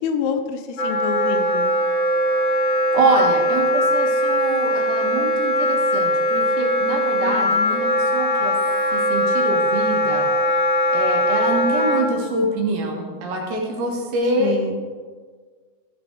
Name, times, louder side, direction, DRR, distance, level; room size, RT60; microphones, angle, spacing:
voice 1, 0.0-1.7 7.2-7.8 14.4-14.8, left 6 dB, 85° left, 7 dB, 2.6 m, -27 dB
Wind instrument woodwind instrument, 0.8-12.0, equal, 65° left, 3.5 m, -20 dB
voice 2, 2.9-8.5 8.9-10.3 10.9-14.6, right 2 dB, 70° right, 0 dB, 3.2 m, -25 dB
15.0 x 5.1 x 4.6 m, 1.6 s
omnidirectional pair, 4.6 m